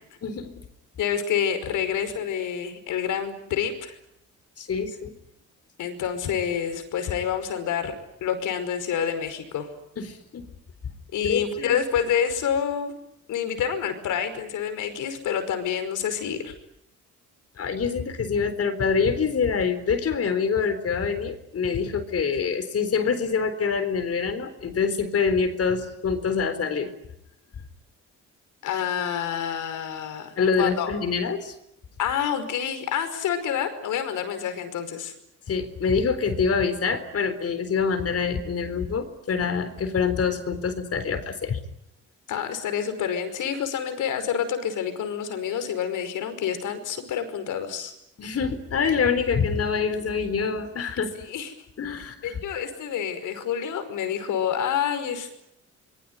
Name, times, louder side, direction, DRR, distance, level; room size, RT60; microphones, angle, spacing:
voice 1, 0.2-0.5 4.6-5.1 10.0-10.5 11.2-11.8 17.6-26.9 30.4-31.5 35.5-41.6 48.2-51.1 51.8-52.4, left 5 dB, 50° left, 11 dB, 4.0 m, -25 dB
voice 2, 1.0-3.9 5.8-7.9 8.2-9.7 11.1-12.9 13.3-16.5 28.6-30.9 32.0-35.1 42.3-47.9 51.2-51.5 52.2-55.4, left 8 dB, 80° left, 10 dB, 5.3 m, -28 dB
26.5 x 22.0 x 9.6 m, 0.79 s
cardioid pair, 90°, 30 cm